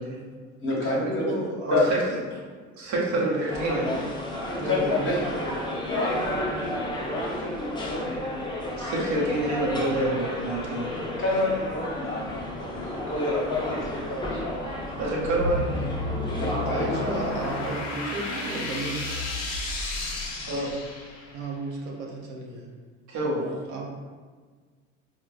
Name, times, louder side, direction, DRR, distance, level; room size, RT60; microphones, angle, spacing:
voice 1, 0.1-0.4 1.0-1.8 2.1-2.2 3.1-3.4 3.7-3.8 4.6-5.2 5.7-5.8 15.3-15.5 16.3-19.2 21.3-22.7 23.2-23.9, right 3 dB, 75° right, -1 dB, 0.7 m, -33 dB
voice 2, 0.6-1.2 1.7-1.9 4.5-8.2 11.2-14.8 16.3-16.8, left 2 dB, 30° left, -5 dB, 1.3 m, -29 dB
voice 3, 1.7-2.0 2.3-2.4 2.8-3.9 8.8-10.9 15.0-15.8 20.4-20.7 23.1-23.4, right 1 dB, 45° right, -3 dB, 1.0 m, -27 dB
sound 1, 3.5-17.7, left 1 dB, 10° left, 0.6 m, -32 dB
sound 2, 15.2-21.5, left 2 dB, 55° left, 0.9 m, -32 dB
4.4 x 2.2 x 2.4 m, 1.5 s
hypercardioid pair, 70°, 39 cm